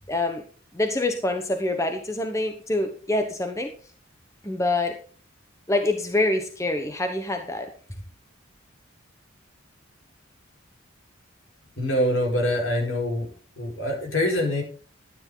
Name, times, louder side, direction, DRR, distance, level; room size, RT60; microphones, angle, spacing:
voice 1, 0.1-0.4 0.7-3.7 4.4-5.0 5.7-7.7, left 2 dB, 15° left, 5 dB, 1.1 m, -25 dB
voice 2, 11.8-13.3 13.6-14.6, left 1 dB, 70° left, 1 dB, 4.7 m, -24 dB
12.0 x 9.7 x 3.9 m, 0.40 s
head